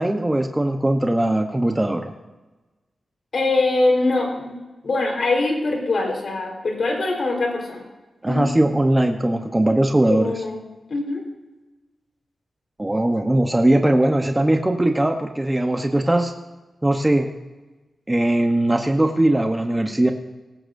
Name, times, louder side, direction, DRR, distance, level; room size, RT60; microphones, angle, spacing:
voice 1, 0.0-2.1 8.2-10.4 12.8-16.3 16.8-17.3 18.1-20.1, right 1 dB, 15° right, 4 dB, 0.9 m, -20 dB
voice 2, 3.3-7.8 8.3-8.5 10.1-10.6 10.9-11.2, left 2 dB, 60° left, 1 dB, 4.1 m, -23 dB
18.0 x 15.0 x 2.7 m, 1.2 s
wide cardioid pair, 95°, 0 cm